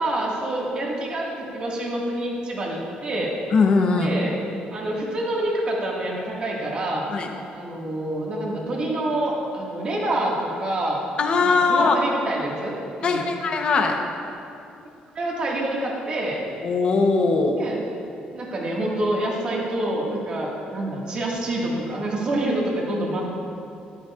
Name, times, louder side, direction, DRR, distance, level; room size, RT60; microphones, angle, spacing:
voice 1, 0.0-3.4 4.0-4.4 4.7-7.1 7.5-11.0 11.4-13.3 15.1-16.4 17.6-17.9 18.3-23.3, right 1 dB, 35° right, -3 dB, 1.8 m, -27 dB
voice 2, 3.5-4.1 7.1-7.3 11.2-11.9 13.0-14.0 16.6-17.6 22.4-22.5, left 4 dB, 35° left, 3 dB, 0.9 m, -20 dB
13.0 x 13.0 x 2.4 m, 2.6 s
cardioid pair, 180°, 3 cm